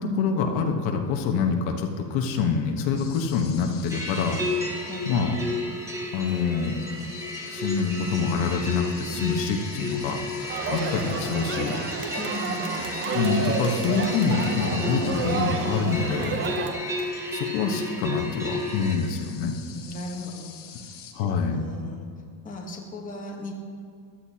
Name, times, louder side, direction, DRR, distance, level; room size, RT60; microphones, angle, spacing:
voice 1, 0.0-5.4 6.1-6.8 7.4-11.8 13.1-16.6 17.3-19.5 21.1-21.6, left 5 dB, 65° left, 3 dB, 1.3 m, -26 dB
sound 1, 3.0-5.5 5.9-6.2 6.6-21.1, left 8 dB, 45° left, 1.3 m, -46 dB
sound 2, 3.9-19.0, left 2 dB, 5° right, 1.3 m, -33 dB
voice 2, 4.8-5.1 12.2-12.9 19.7-20.9 21.2-22.1 22.4-23.5, left 2 dB, 15° left, 0 dB, 1.2 m, -37 dB
Crowd, 10.5-16.7, right 5 dB, 25° right, 0.7 m, -30 dB
15.0 x 11.5 x 2.9 m, 2.3 s
cardioid pair, 155°, 48 cm